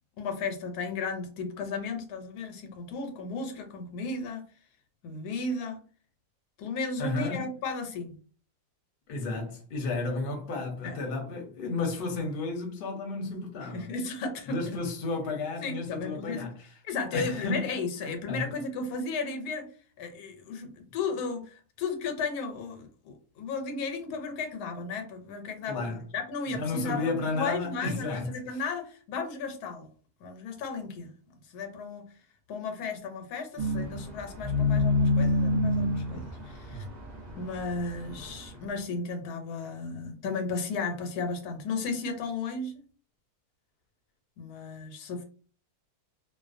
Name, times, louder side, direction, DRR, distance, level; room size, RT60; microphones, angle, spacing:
voice 1, 0.2-4.4 5.0-5.8 6.6-8.2 10.8-11.0 13.7-14.8 15.6-16.5 16.8-19.7 20.0-25.9 26.1-29.9 30.2-31.1 31.5-32.1 32.5-36.9 37.3-42.7 44.4-45.2, left 4 dB, 90° left, 1.1 m, -34 dB
voice 2, 7.0-7.4 9.1-13.9 14.5-16.7 17.1-17.7 18.3-18.5 25.7-26.0 26.5-28.6, left 3 dB, 55° left, 0.6 m, -32 dB
sound 1, 33.6-38.5, left 2 dB, 70° right, 0.4 m, -27 dB
2.5 x 2.1 x 2.5 m
omnidirectional pair, 1.6 m